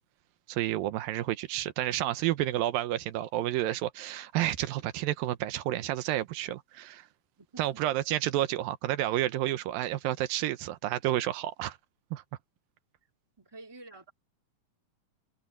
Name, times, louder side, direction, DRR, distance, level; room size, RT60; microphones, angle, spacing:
voice 1, 0.5-7.1 7.6-11.8 12.1-12.2, right 14 dB, 85° right, 2.5 m, -30 dB
voice 2, 7.4-7.8 13.4-14.1, right 2 dB, 10° right, 2.4 m, -49 dB
omnidirectional pair, 4.1 m